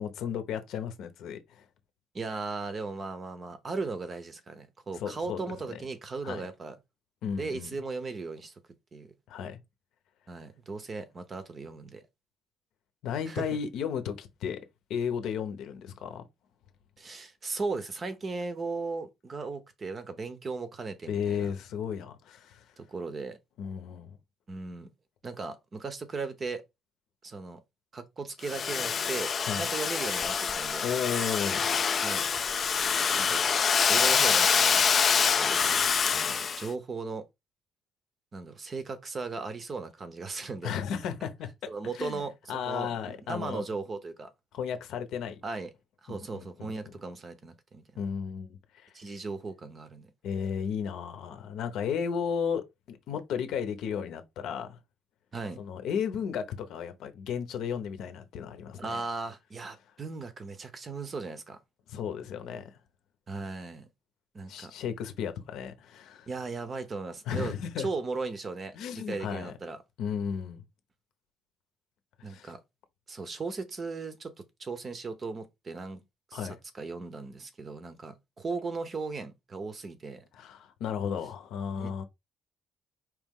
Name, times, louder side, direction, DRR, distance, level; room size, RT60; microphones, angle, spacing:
voice 1, 0.0-1.6 4.9-5.4 5.7-5.8 6.2-6.5 7.2-7.7 9.3-9.6 13.0-14.6 14.9-16.2 21.1-22.6 23.6-24.2 29.4-29.7 30.8-31.7 40.6-43.6 44.5-45.4 46.1-46.7 48.0-48.9 50.2-54.8 55.6-58.9 61.9-62.8 64.5-66.3 67.3-67.9 68.7-69.5 70.0-70.6 72.2-72.5 76.3-76.6 80.3-82.0, left 7 dB, 65° left, 0.8 m, -34 dB
voice 2, 2.1-6.8 7.4-8.5 8.9-9.1 10.3-12.0 13.3-13.5 17.0-21.5 22.8-23.4 24.5-24.9 25.2-26.6 27.2-27.6 27.9-30.9 32.0-32.3 32.7-33.4 33.9-34.8 35.4-35.6 36.1-37.2 38.3-40.7 41.7-44.3 45.4-45.7 46.0-47.8 48.9-50.1 55.3-55.6 58.8-61.6 63.3-63.9 64.3-64.7 66.3-69.8 72.2-72.6 73.1-76.0 76.3-76.5 76.7-80.2 81.7-82.0, right 4 dB, 25° right, 0.7 m, -37 dB
Domestic sounds home sounds, 28.4-36.7, left 6 dB, 30° left, 0.3 m, -26 dB
4.8 x 3.1 x 3.6 m
cardioid pair, 170°, 0 cm